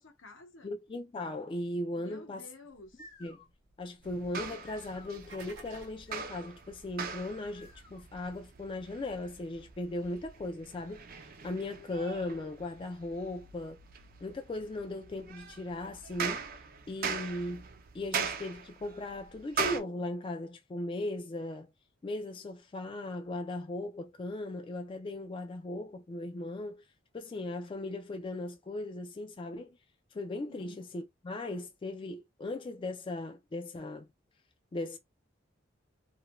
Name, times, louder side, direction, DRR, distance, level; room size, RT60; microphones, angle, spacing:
voice 1, 0.0-0.7 2.0-3.1 30.5-30.8, left 2 dB, 80° left, 0.8 m, -52 dB
voice 2, 0.6-2.5 3.2-3.4 3.8-13.8 14.2-16.5 16.9-17.6 17.9-21.7 22.0-26.8 27.1-29.8 30.1-34.1 34.7-35.0, left 2 dB, 25° left, 0.3 m, -38 dB
sound 1, 2.7-8.3, left 1 dB, 55° left, 1.0 m, -58 dB
sound 2, 4.0-19.8, right 5 dB, 50° right, 0.5 m, -41 dB
sound 3, 4.9-6.1, right 2 dB, 65° right, 0.8 m, -50 dB
2.4 x 2.1 x 2.9 m
head